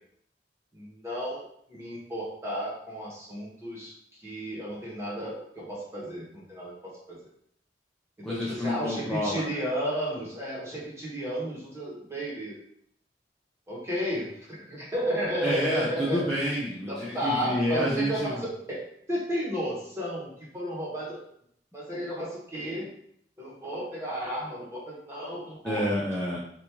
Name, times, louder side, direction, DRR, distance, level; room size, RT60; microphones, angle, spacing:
voice 1, 0.7-1.4 1.7-3.9 4.2-7.2 8.2-12.6 13.7-16.2 16.9-21.2 21.7-22.9 23.4-25.9, equal, 15° right, -6 dB, 1.2 m, -33 dB
voice 2, 8.2-9.6 15.4-18.3 25.6-26.4, equal, 5° left, -7 dB, 0.5 m, -29 dB
3.5 x 2.6 x 2.9 m, 0.68 s
head